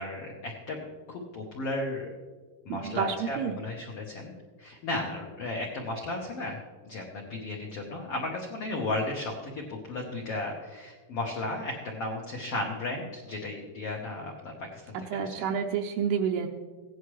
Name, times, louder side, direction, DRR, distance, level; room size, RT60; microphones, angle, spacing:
voice 1, 0.0-2.1 2.6-4.3 4.6-6.6 6.8-15.4, left 2 dB, 80° left, -1 dB, 1.3 m, -34 dB
voice 2, 2.8-3.5 15.1-16.5, right 7 dB, 80° right, 2 dB, 2.5 m, -29 dB
16.5 x 10.0 x 3.2 m, 1.4 s
omnidirectional pair, 4.6 m